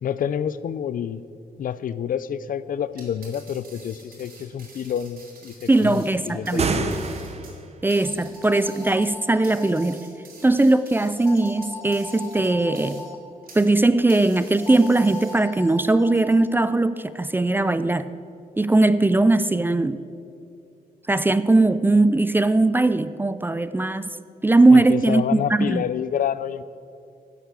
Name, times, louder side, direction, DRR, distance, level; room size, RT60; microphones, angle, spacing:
voice 1, 0.0-1.3 1.6-7.1 24.7-26.6, left 8 dB, 60° left, 16 dB, 0.4 m, -28 dB
sound 1, 2.9-13.8 14.1-15.7, right 3 dB, 70° right, 3.0 m, -48 dB
voice 2, 5.7-6.7 7.8-10.0 10.4-13.0 13.5-18.1 18.6-20.0 21.1-24.1 24.4-25.8, right 2 dB, 15° right, 14 dB, 0.4 m, -19 dB
sound 2, 6.4-7.7, right 4 dB, 40° right, 0.9 m, -27 dB
sound 3, 8.0-9.9 11.2-13.2 14.6-16.6, left 3 dB, 20° left, 1.0 m, -40 dB
11.0 x 8.2 x 6.9 m, 2.4 s
cardioid pair, 105°, 16 cm